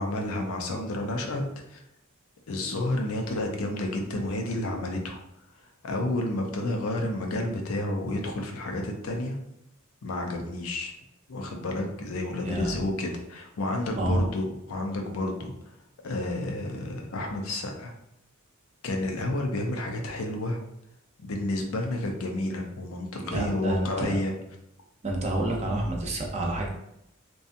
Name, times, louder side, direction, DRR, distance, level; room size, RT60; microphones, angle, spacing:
voice 1, 0.0-1.4 1.7-1.8 2.5-5.2 5.8-9.4 10.0-10.9 11.3-15.5 16.0-17.9 18.8-20.6 21.2-24.3, left 1 dB, 85° left, 2 dB, 0.5 m, -30 dB
voice 2, 12.5-12.8 14.0-14.2 23.2-24.2 25.0-26.7, right 1 dB, 30° right, -1 dB, 0.5 m, -28 dB
2.7 x 2.2 x 2.5 m, 0.80 s
head